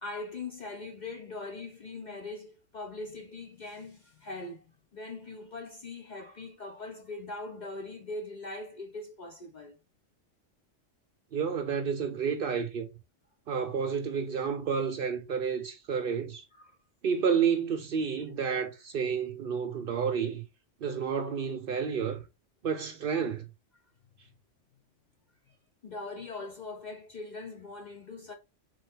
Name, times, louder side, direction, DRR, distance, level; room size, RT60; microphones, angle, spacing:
voice 1, 0.0-4.7 4.9-9.8 16.6-16.7 25.8-28.3, left 3 dB, 50° left, 0.6 m, -41 dB
voice 2, 11.3-12.9 13.5-16.4 17.0-20.4 20.8-22.2 22.6-23.5, right 6 dB, 60° right, 0.6 m, -30 dB
4.0 x 3.3 x 3.4 m
omnidirectional pair, 1.3 m